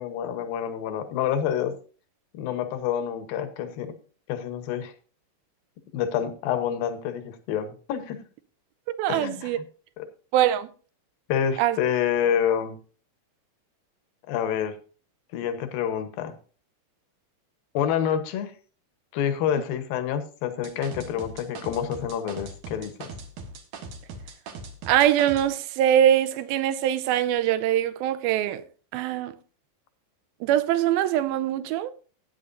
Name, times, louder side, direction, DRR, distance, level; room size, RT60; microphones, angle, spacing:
voice 1, 0.0-1.7 2.3-3.9 4.3-4.9 5.9-8.2 9.1-9.6 10.0-10.1 11.3-12.8 14.3-14.8 15.3-16.3 17.7-18.5 19.1-23.1, left 9 dB, 75° left, 2.8 m, -28 dB
voice 2, 9.0-9.6 10.3-10.7 11.6-11.8 24.9-28.6 28.9-29.4 30.4-31.9, right 11 dB, 85° right, 2.5 m, -23 dB
sound 1, 20.6-25.5, right 3 dB, 65° right, 2.7 m, -40 dB
16.5 x 9.5 x 2.6 m
omnidirectional pair, 4.3 m